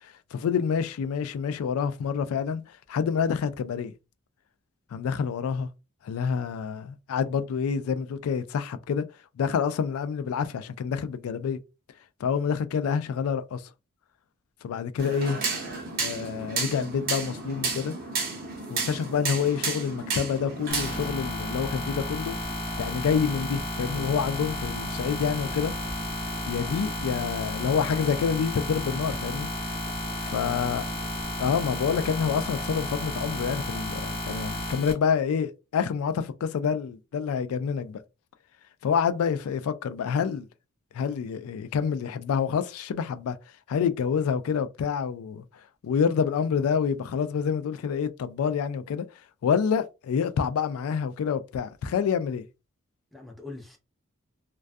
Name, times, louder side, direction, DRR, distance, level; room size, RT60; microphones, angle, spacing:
voice 1, 0.0-3.9 4.9-5.7 6.0-9.0 9.4-11.6 12.2-13.6 14.6-15.4 16.0-18.0 18.7-22.3 22.8-25.7 26.5-29.5 30.2-30.8 31.4-38.0 38.8-40.5 40.9-43.4 43.7-45.4 45.8-49.1 49.4-52.4, left 6 dB, 75° left, 0.3 m, -27 dB
sound 1, 15.0-21.1, right 4 dB, 45° right, 0.8 m, -32 dB
sound 2, 20.7-34.9, left 1 dB, 30° left, 0.8 m, -32 dB
Boat Water vehicle, 23.4-31.2, right 1 dB, 80° right, 0.7 m, -52 dB
voice 2, 53.1-53.8, left 3 dB, ahead, 0.5 m, -44 dB
2.3 x 2.3 x 2.5 m
head